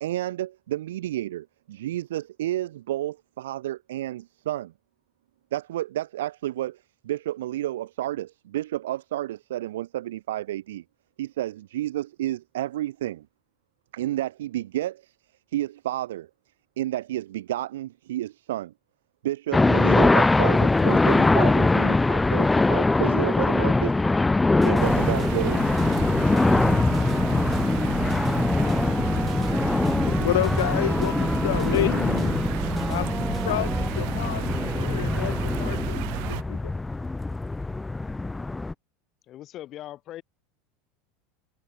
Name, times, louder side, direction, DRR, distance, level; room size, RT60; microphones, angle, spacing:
voice 1, 0.0-4.7 5.5-10.8 11.2-13.3 13.9-15.1 15.5-16.3 16.8-18.7 19.2-24.0 24.6-25.6, right 14 dB, 85° right, 1.3 m, -31 dB
sound 1, 19.5-38.7, left 2 dB, 10° left, 0.5 m, -23 dB
sound 2, 24.5-33.9, right 1 dB, 5° right, 3.1 m, -33 dB
sound 3, 24.8-36.4, right 40 dB or more, 65° right, 2.2 m, -34 dB
voice 2, 29.8-32.4 32.9-36.0 36.3-36.7, left 14 dB, 85° left, 1.4 m, -30 dB
voice 3, 39.3-40.2, left 13 dB, 45° left, 4.9 m, -40 dB
supercardioid pair, 110°, 0 cm